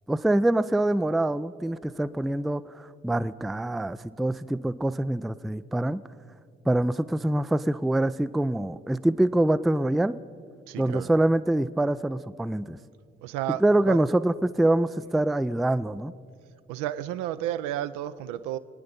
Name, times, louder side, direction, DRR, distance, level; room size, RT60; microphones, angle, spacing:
voice 1, 0.1-6.0 6.7-10.1 10.8-12.8 13.6-16.1, right 1 dB, ahead, 0.3 m, -25 dB
voice 2, 10.7-11.1 13.2-14.0 16.7-18.6, right 13 dB, 70° right, 0.6 m, -32 dB
22.0 x 9.6 x 5.2 m
hypercardioid pair, 45°, 31 cm